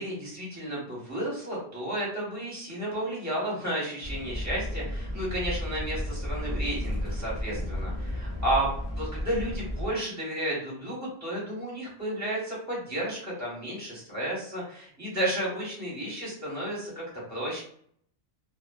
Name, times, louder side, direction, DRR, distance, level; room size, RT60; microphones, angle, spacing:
voice 1, 0.0-17.0 17.3-17.6, right 1 dB, 15° right, -6 dB, 1.2 m, -32 dB
sound 1, 4.0-9.9, left 1 dB, 15° left, 1.0 m, -33 dB
2.5 x 2.4 x 2.3 m, 0.62 s
omnidirectional pair, 1.3 m